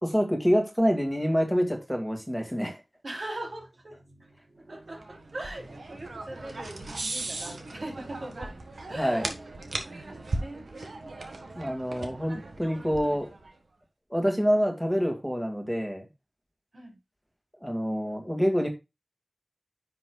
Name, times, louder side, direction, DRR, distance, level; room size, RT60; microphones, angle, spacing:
voice 1, 0.0-2.8 9.0-9.3 11.6-13.3 14.1-16.1 17.6-18.7, equal, 5° right, 1.9 m, -26 dB
voice 2, 3.0-8.6 8.9-9.4 9.8-11.2 11.6-12.3 16.7-17.0, right 1 dB, 65° right, 3.0 m, -41 dB
sound 1, 5.0-13.5, right 2 dB, 90° right, 1.5 m, -38 dB
9.9 x 6.5 x 2.3 m
wide cardioid pair, 55°, 0 cm